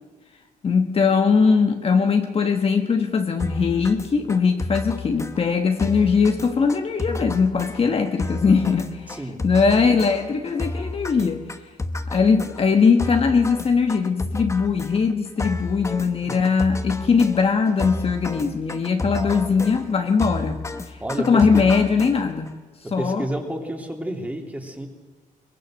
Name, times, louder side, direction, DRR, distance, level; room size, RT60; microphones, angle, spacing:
voice 1, 0.6-11.5 12.1-20.6 21.2-22.5 22.9-23.2, left 5 dB, 40° left, 1.3 m, -20 dB
sound 1, 3.4-22.5, left 2 dB, 20° left, 1.1 m, -32 dB
voice 2, 9.1-9.4 16.2-16.4 19.0-19.6 21.0-21.6 22.8-24.9, right 1 dB, 10° right, 3.0 m, -31 dB
23.0 x 21.0 x 6.5 m
cardioid pair, 130°, 14 cm